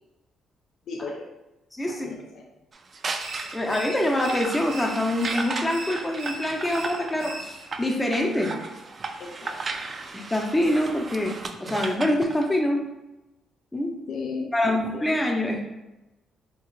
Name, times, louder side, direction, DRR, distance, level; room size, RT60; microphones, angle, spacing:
voice 1, 0.9-1.3 1.9-2.4 9.2-9.6 14.1-15.1, left 4 dB, 65° left, 1 dB, 0.4 m, -35 dB
voice 2, 1.8-2.1 3.5-8.5 10.1-12.8 13.7-14.0 14.5-15.6, left 1 dB, 15° left, 1 dB, 0.6 m, -25 dB
sound 1, 2.7-12.5, right 3 dB, 40° right, 0.3 m, -35 dB
sound 2, 3.2-7.8, right 2 dB, 80° right, 0.8 m, -40 dB
3.6 x 2.4 x 3.0 m, 0.98 s
cardioid pair, 90°, 0 cm